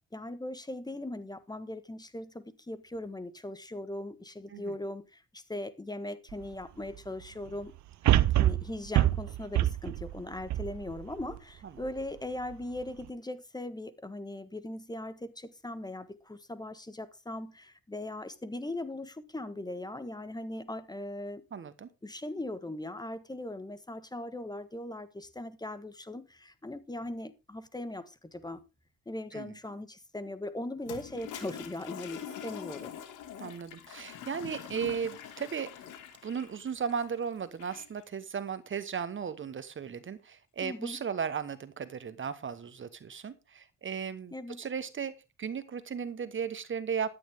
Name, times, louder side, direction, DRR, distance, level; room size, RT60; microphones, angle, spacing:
voice 1, 0.1-7.7 8.4-21.4 22.0-28.6 29.0-32.9 40.6-41.0 44.3-44.7, left 1 dB, 15° left, 1.4 m, -39 dB
sound 1, 6.3-6.4 8.1-11.4 11.9-12.0, right 14 dB, 65° right, 0.6 m, -26 dB
voice 2, 21.5-21.9 29.3-29.6 33.4-35.7 36.2-45.1 45.4-47.1, right 7 dB, 40° right, 1.2 m, -36 dB
Toilet flush, 30.8-38.0, left 9 dB, 85° left, 2.2 m, -45 dB
13.0 x 10.0 x 3.6 m
cardioid pair, 90°, 30 cm